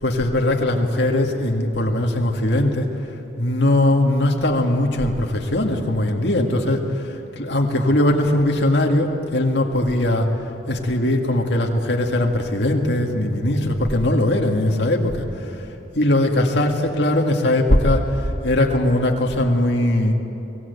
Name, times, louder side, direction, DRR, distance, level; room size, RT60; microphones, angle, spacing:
voice 1, 0.0-2.9 3.4-10.3 10.7-15.7 15.9-20.1, left 1 dB, 70° left, 2 dB, 2.0 m, -20 dB
23.5 x 17.5 x 8.2 m, 3.0 s
head